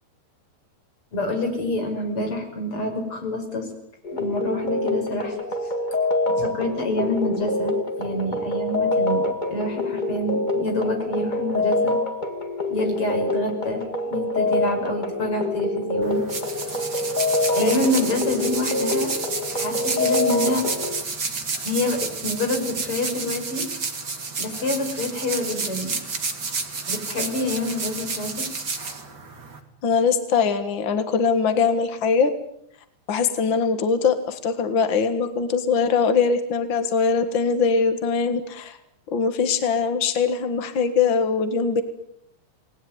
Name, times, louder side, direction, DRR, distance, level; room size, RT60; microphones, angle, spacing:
voice 1, 1.1-3.7 4.1-5.4 5.6-5.7 6.4-12.0 12.7-16.2 16.7-16.8 17.6-19.1 19.5-20.6 21.7-23.7 24.4-26.0 26.9-28.5, left 1 dB, 30° left, 4 dB, 6.3 m, -27 dB
sound 1, 4.0-21.0, left 2 dB, 90° left, 0.4 m, -26 dB
sound 2, 16.0-29.6, right 4 dB, 30° right, 2.8 m, -30 dB
voice 2, 17.6-17.9 29.8-32.3 33.1-38.8 39.1-41.8, left 5 dB, 55° left, 9 dB, 1.3 m, -22 dB
28.5 x 20.0 x 9.5 m, 0.75 s
omnidirectional pair, 4.8 m